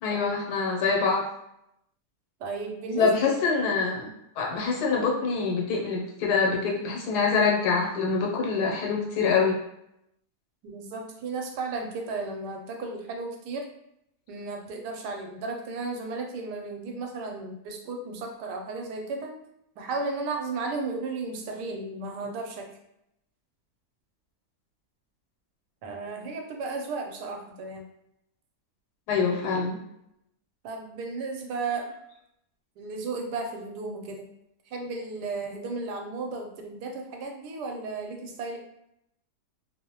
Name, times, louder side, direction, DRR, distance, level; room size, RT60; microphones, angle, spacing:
voice 1, 0.0-1.2 2.9-4.1 4.4-9.6 29.1-29.8, left 5 dB, 85° left, -1 dB, 1.3 m, -25 dB
voice 2, 2.4-3.4 10.6-13.7 14.3-19.4 19.8-22.8 25.8-27.8 30.6-32.0 32.8-34.2 34.7-38.6, right 3 dB, 90° right, 2 dB, 1.2 m, -34 dB
2.8 x 2.0 x 2.8 m, 0.79 s
omnidirectional pair, 1.7 m